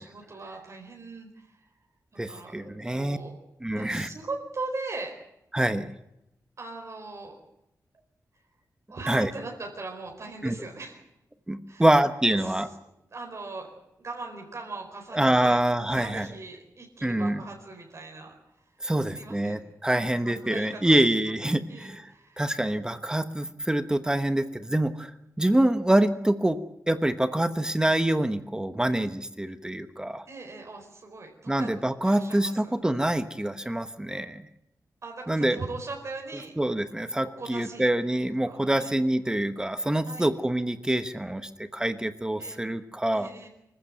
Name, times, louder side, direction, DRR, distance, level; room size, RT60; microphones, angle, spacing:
voice 1, 0.0-1.7 2.3-2.5 2.8-3.4 3.7-5.1 6.6-7.4 8.9-11.0 11.7-11.9 12.4-12.6 13.1-13.7 14.0-15.6 15.9-18.3 19.1-19.6 19.9-21.1 21.7-22.4 30.3-31.7 32.0-32.8 35.0-36.5 37.2-37.9 38.2-38.9 40.1-40.3 42.4-42.6 43.1-43.5, right 3 dB, 50° right, 2 dB, 4.5 m, -40 dB
voice 2, 2.2-3.2 3.6-4.1 5.5-5.9 9.1-9.3 10.4-10.5 11.5-12.7 15.1-16.3 17.0-17.4 18.8-22.1 22.4-25.1 25.4-26.6 26.9-30.2 31.5-34.4 35.3-35.6 36.6-43.3, right 1 dB, 10° right, 10 dB, 1.0 m, -25 dB
25.5 x 15.0 x 9.2 m, 0.87 s
wide cardioid pair, 150°, 7 cm